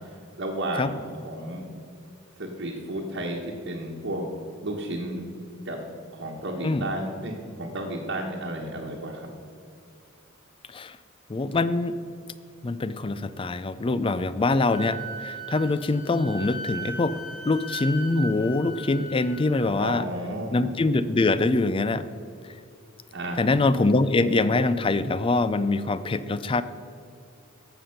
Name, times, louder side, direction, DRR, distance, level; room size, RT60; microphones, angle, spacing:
voice 1, 0.4-1.7 2.4-5.3 5.6-5.8 6.1-9.3 19.8-20.7 23.1-23.5, right 1 dB, 55° right, -3 dB, 1.2 m, -32 dB
voice 2, 11.3-12.0 12.6-17.2 17.5-20.0 20.5-22.0 23.4-26.6, left 3 dB, 25° left, 14 dB, 0.4 m, -24 dB
Wind instrument woodwind instrument, 14.7-19.9, right 1 dB, 40° left, 2.8 m, -38 dB
11.5 x 7.7 x 5.8 m, 2.5 s
head